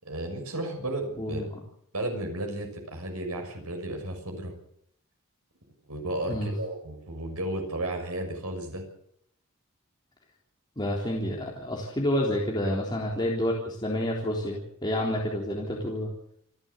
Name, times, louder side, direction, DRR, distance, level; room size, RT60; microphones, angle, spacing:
voice 1, 0.0-1.4 1.9-4.5 5.9-8.8 12.6-12.8, right 1 dB, 80° right, 4 dB, 6.6 m, -33 dB
voice 2, 10.8-16.1, left 1 dB, 20° left, -2 dB, 3.7 m, -29 dB
28.5 x 12.0 x 8.1 m, 0.69 s
head